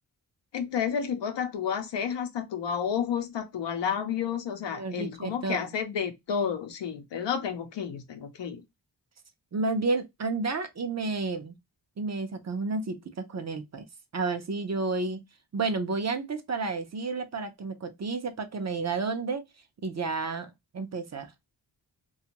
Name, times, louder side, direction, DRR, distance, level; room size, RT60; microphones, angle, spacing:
voice 1, 0.5-8.6, left 7 dB, 85° left, 0.7 m, -31 dB
voice 2, 4.7-5.7 9.5-11.6 12.0-13.9 14.1-15.2 15.5-19.4 19.8-21.3, right 3 dB, 40° right, 0.5 m, -31 dB
2.5 x 2.3 x 2.8 m
wide cardioid pair, 100°, 42 cm